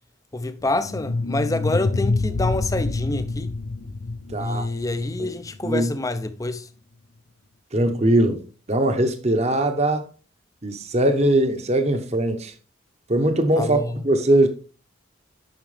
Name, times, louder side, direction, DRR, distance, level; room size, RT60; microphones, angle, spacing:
voice 1, 0.3-3.5 4.4-6.7 13.6-14.0, left 2 dB, 15° left, 0.5 m, -27 dB
sound 1, 0.6-5.7, left 3 dB, 75° left, 0.6 m, -27 dB
voice 2, 4.3-4.6 5.2-5.3 5.6-5.9 7.7-8.4 8.7-10.1 10.6-12.5 13.1-14.5, right 1 dB, 35° right, 0.9 m, -21 dB
8.9 x 6.0 x 3.3 m
head